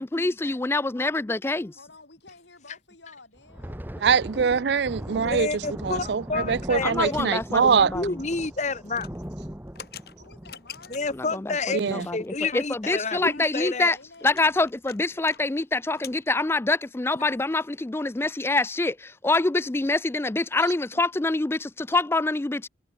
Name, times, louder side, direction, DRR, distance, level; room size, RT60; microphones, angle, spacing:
voice 1, 0.0-1.7 6.8-8.2 11.2-14.0 14.2-22.7, left 2 dB, 15° left, 0.3 m, -26 dB
voice 2, 1.8-4.0 10.2-11.1 13.0-14.3, left 3 dB, 75° left, 5.5 m, -51 dB
Thunder, 3.4-12.4 12.8-13.0 13.4-13.6 14.2-14.7, equal, 10° right, 1.1 m, -39 dB
voice 3, 4.0-5.5 5.8-7.9 11.7-12.1, right 6 dB, 70° right, 0.5 m, -23 dB
voice 4, 5.2-9.1 10.9-13.9, left 3 dB, 40° left, 1.1 m, -30 dB
sound 1, 8.9-11.3 11.9-12.3 12.6-12.7 13.0-13.1 13.4-15.4 15.7-16.2, left 8 dB, 55° left, 5.8 m, -45 dB
head